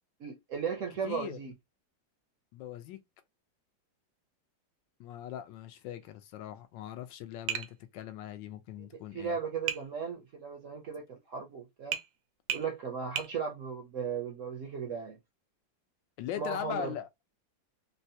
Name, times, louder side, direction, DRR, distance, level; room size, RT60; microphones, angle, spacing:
voice 1, 0.2-1.5 9.1-12.0 12.5-15.2 16.4-16.9, right 6 dB, 60° right, 0.8 m, -36 dB
voice 2, 1.0-1.4 2.5-3.0 5.0-9.3 16.2-17.1, left 10 dB, 80° left, 1.3 m, -40 dB
Tap, 7.5-7.7 9.7-9.9 11.9-12.1 12.5-12.7 13.2-13.3, right 9 dB, 75° right, 1.2 m, -33 dB
3.9 x 2.2 x 2.7 m
omnidirectional pair, 2.0 m